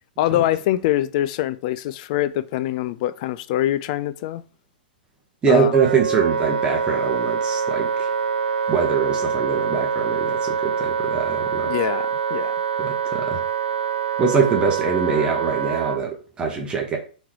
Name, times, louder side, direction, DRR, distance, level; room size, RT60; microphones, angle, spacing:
voice 1, 0.2-4.4 5.5-5.7 11.7-12.5, left 13 dB, 45° left, 0.4 m, -24 dB
voice 2, 5.4-8.1 8.7-11.7 12.8-13.4 14.2-17.0, right 5 dB, 15° right, 0.9 m, -23 dB
Wind instrument woodwind instrument, 5.7-16.0, right 7 dB, 90° right, 0.4 m, -25 dB
3.5 x 3.2 x 4.6 m
hypercardioid pair, 125°, 5 cm